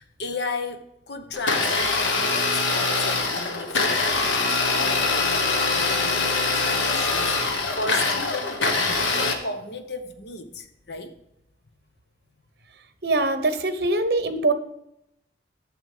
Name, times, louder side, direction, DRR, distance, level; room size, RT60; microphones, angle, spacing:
voice 1, 0.0-11.1, left 3 dB, 60° left, 1.0 m, -35 dB
Domestic sounds home sounds, 1.3-9.3, left 3 dB, 90° left, 1.4 m, -23 dB
voice 2, 13.0-14.5, right 2 dB, 55° right, 0.9 m, -23 dB
9.3 x 7.0 x 4.9 m
head